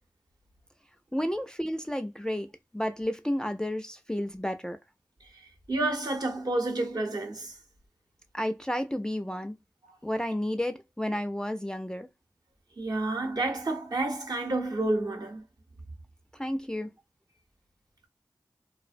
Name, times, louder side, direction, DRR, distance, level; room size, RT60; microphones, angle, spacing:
voice 1, 1.1-2.5 2.7-4.8 8.3-9.6 10.0-12.1 16.3-16.9, equal, 10° left, 0.3 m, -31 dB
voice 2, 5.7-7.5 12.8-15.4, right 2 dB, 60° right, 0.9 m, -29 dB
2.5 x 2.0 x 2.4 m
wide cardioid pair, 50°, 8 cm